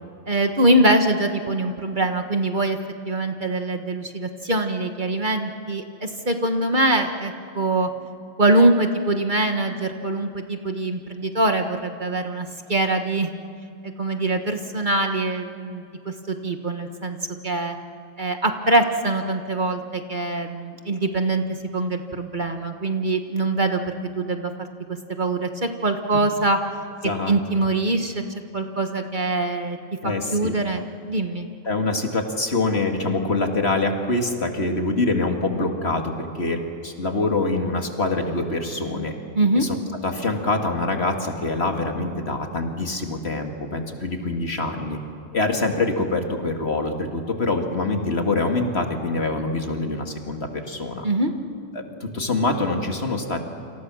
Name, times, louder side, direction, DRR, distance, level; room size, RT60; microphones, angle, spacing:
voice 1, 0.3-2.8 3.0-7.9 8.4-13.3 13.8-17.2 17.4-17.8 18.2-21.4 21.7-23.8 24.2-24.5 24.9-26.6 27.3-28.2 28.5-29.8 30.0-31.5 39.3-39.7 51.0-51.3, right 2 dB, 40° right, 5 dB, 1.5 m, -23 dB
voice 2, 27.0-27.3 30.0-30.5 31.6-39.1 39.6-39.8 40.0-45.0 45.3-51.0 51.7-53.4, left 2 dB, 55° left, 3 dB, 2.4 m, -25 dB
29.0 x 27.0 x 6.3 m, 2.5 s
omnidirectional pair, 1.3 m